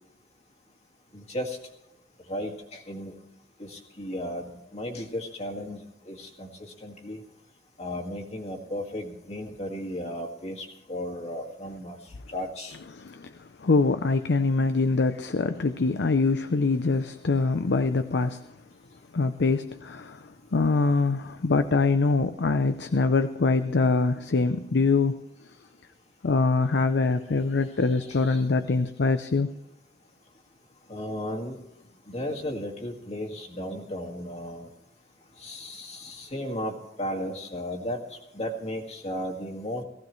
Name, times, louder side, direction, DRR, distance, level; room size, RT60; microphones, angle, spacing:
voice 1, 1.1-1.6 2.3-3.1 3.6-5.8 6.1-7.2 7.8-12.0 12.3-12.8 28.1-28.4 30.9-31.6 32.1-34.7 35.4-38.0 38.3-39.8, left 1 dB, 40° left, 1 dB, 2.0 m, -35 dB
voice 2, 12.7-18.4 19.1-25.2 26.2-29.5, left 3 dB, 75° left, 10 dB, 0.6 m, -24 dB
18.5 x 15.5 x 3.1 m, 0.88 s
head